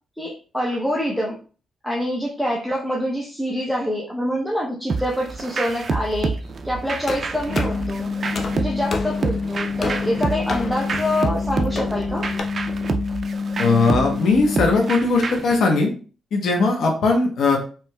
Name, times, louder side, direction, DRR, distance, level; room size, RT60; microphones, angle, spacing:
voice 1, 0.2-1.4 1.8-8.1 8.6-12.3, equal, 5° left, -4 dB, 0.8 m, -26 dB
sound 1, 4.9-15.6, right 4 dB, 50° right, 0.4 m, -28 dB
sound 2, 7.1-12.4, left 3 dB, 50° left, 0.6 m, -32 dB
sound 3, 7.5-14.9, left 4 dB, 90° left, 0.4 m, -28 dB
voice 2, 13.6-15.9 16.3-17.6, left 3 dB, 70° left, 2 dB, 0.9 m, -19 dB
4.5 x 3.0 x 2.3 m, 0.38 s
cardioid pair, 90°, 0 cm